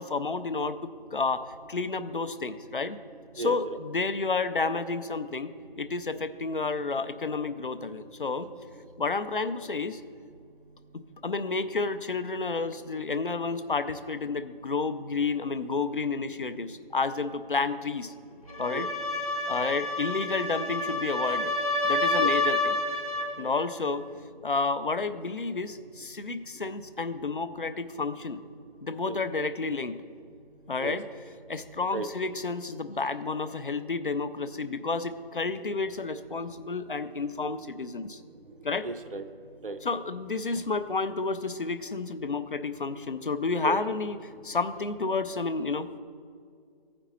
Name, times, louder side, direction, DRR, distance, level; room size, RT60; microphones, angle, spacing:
voice 1, 0.0-3.0 3.4-8.5 9.0-10.0 10.9-18.1 18.6-18.9 19.5-21.5 21.8-22.8 23.4-24.0 24.4-28.4 28.8-30.0 30.7-31.1 31.5-38.2 38.6-38.9 39.8-45.9, left 4 dB, 60° left, 11 dB, 0.5 m, -31 dB
sound 1, 18.5-23.4, left 2 dB, 35° left, 0.9 m, -28 dB
voice 2, 38.8-39.2 39.6-39.8 43.6-43.8, right 3 dB, 60° right, 8 dB, 0.7 m, -34 dB
14.0 x 5.2 x 4.2 m, 2.2 s
figure-of-eight pair, 170°, 30 cm